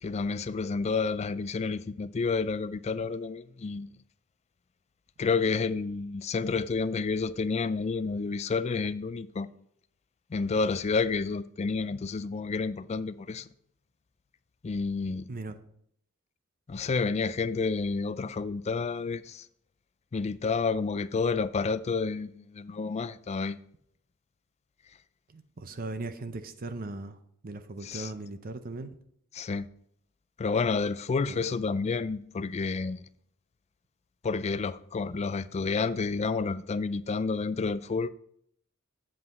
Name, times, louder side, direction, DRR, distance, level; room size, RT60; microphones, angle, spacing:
voice 1, 0.0-3.9 5.2-9.5 10.3-13.5 14.6-15.3 16.7-19.5 20.1-23.6 27.8-28.1 29.3-29.7 30.4-33.0 34.2-38.1, left 4 dB, 30° left, 0.3 m, -30 dB
voice 2, 25.3-27.2 27.4-29.0 31.3-31.5, right 2 dB, 45° right, 0.6 m, -38 dB
7.7 x 7.7 x 4.1 m
head